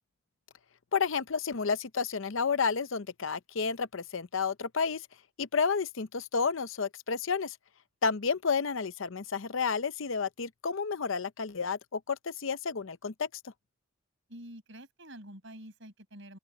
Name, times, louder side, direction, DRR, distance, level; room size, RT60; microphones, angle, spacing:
voice 1, 0.9-5.1 5.4-7.6 8.0-13.3, left 5 dB, 65° left, 0.7 m, -31 dB
voice 2, 14.3-16.4, right 1 dB, 60° right, 6.9 m, -47 dB
open air
head